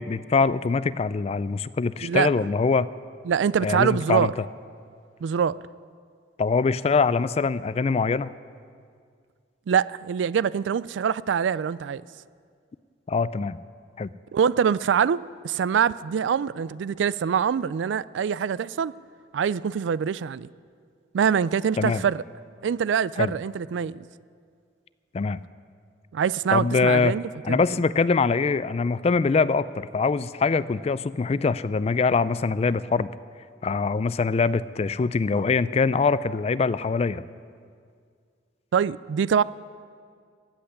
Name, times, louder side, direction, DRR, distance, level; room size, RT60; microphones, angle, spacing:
voice 1, 0.0-2.9 3.6-4.3 6.4-8.3 13.1-13.6 14.0-14.1 21.8-22.0 23.2-23.3 25.1-25.4 26.5-27.1 27.4-33.1 33.6-37.2, left 4 dB, 35° left, 0.3 m, -23 dB
voice 2, 3.3-4.3 5.2-5.6 9.7-12.0 14.3-15.2 15.4-18.9 19.3-20.5 21.1-22.2 22.6-24.1 26.1-27.6 38.7-39.4, right 7 dB, 80° right, 0.3 m, -24 dB
15.0 x 8.0 x 9.7 m
head